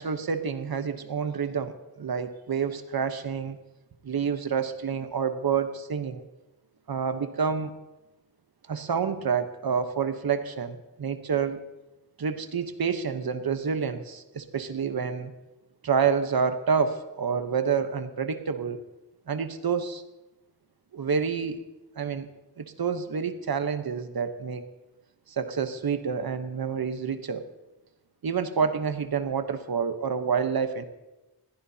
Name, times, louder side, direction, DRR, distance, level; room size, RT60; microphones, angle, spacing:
voice 1, 0.0-3.6 4.0-6.3 6.9-7.7 8.7-11.6 12.2-15.3 15.8-18.8 19.3-20.0 20.9-21.6 22.0-22.3 22.6-24.7 25.3-27.5 28.2-30.8, right 6 dB, 65° right, 9 dB, 1.0 m, -28 dB
20.5 x 15.5 x 2.8 m, 1.0 s
wide cardioid pair, 105°, 39 cm